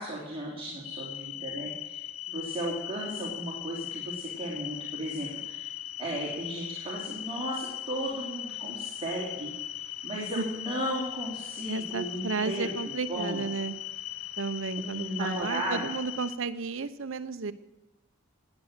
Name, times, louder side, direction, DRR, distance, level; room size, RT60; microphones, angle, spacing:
voice 1, 0.0-5.7 6.0-12.7 13.1-13.4 14.8-15.8, right 1 dB, 25° right, -4 dB, 3.1 m, -35 dB
sound 1, 0.8-16.4, left 13 dB, 85° left, 0.8 m, -39 dB
voice 2, 11.7-13.7 14.4-17.5, right 4 dB, 65° right, 13 dB, 0.8 m, -33 dB
18.5 x 8.9 x 7.5 m, 1.1 s
head